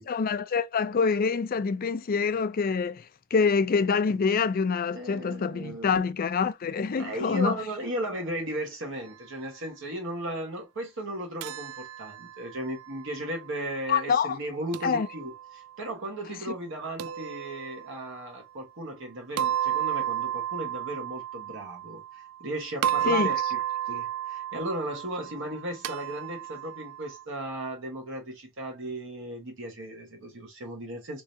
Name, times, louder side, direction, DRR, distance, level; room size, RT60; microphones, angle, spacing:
voice 1, 0.1-7.6 13.9-14.4 14.8-15.1 16.5-16.6 23.1-23.3, left 5 dB, 45° left, 0.4 m, -26 dB
voice 2, 4.9-6.0 6.9-23.6 23.9-31.2, right 1 dB, 65° right, 1.2 m, -36 dB
sound 1, 11.4-13.5 14.7-15.7 17.0-18.2 19.4-22.5 22.8-27.2, right 11 dB, 90° right, 0.3 m, -33 dB
3.8 x 3.1 x 2.6 m
head